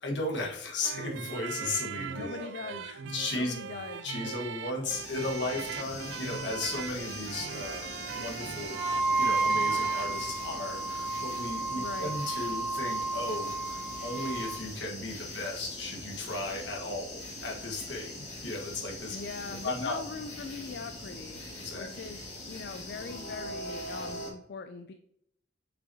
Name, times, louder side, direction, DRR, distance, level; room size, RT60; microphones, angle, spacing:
voice 1, 0.0-2.5 2.8-3.5 4.0-19.2 19.6-20.0 21.6-21.9, left 2 dB, 80° left, -1 dB, 1.5 m, -36 dB
sound 1, 0.8-10.2, right 7 dB, 85° right, 0.3 m, -40 dB
voice 2, 2.2-3.0 3.3-4.1 11.8-12.1 19.1-21.4 21.7-24.9, left 4 dB, 60° left, 7 dB, 0.4 m, -41 dB
sound 2, 4.8-24.3, left 1 dB, 40° left, 1.8 m, -42 dB
Wind instrument woodwind instrument, 8.7-14.6, right 3 dB, 5° right, 1.1 m, -31 dB
6.2 x 5.4 x 2.8 m, 0.70 s
head